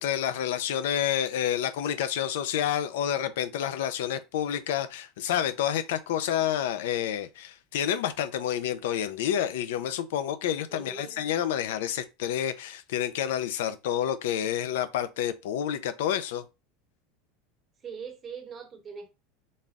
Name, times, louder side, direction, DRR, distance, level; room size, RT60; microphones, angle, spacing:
voice 1, 0.0-16.4, left 10 dB, 85° left, 0.6 m, -29 dB
voice 2, 10.7-11.2 17.8-19.1, right 6 dB, 20° right, 0.9 m, -41 dB
4.2 x 3.5 x 2.5 m
supercardioid pair, 175°, 0 cm